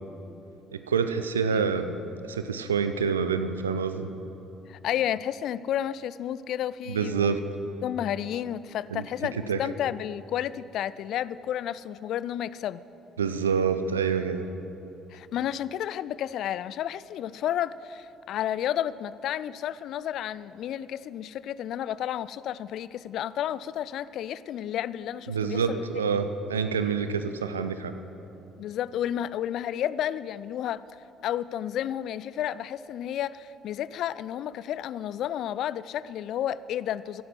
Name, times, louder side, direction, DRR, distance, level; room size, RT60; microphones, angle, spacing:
voice 1, 0.7-2.0 2.2-4.1 6.9-7.4 8.9-9.1 9.5-9.6 13.2-14.5 25.3-27.9, right 6 dB, 80° right, 9 dB, 0.6 m, -27 dB
voice 2, 4.7-7.4 7.8-12.8 15.1-25.8 28.6-30.8 31.2-37.2, left 11 dB, 55° left, 18 dB, 0.4 m, -31 dB
15.0 x 11.0 x 6.2 m, 2.9 s
figure-of-eight pair, 50°, 0 cm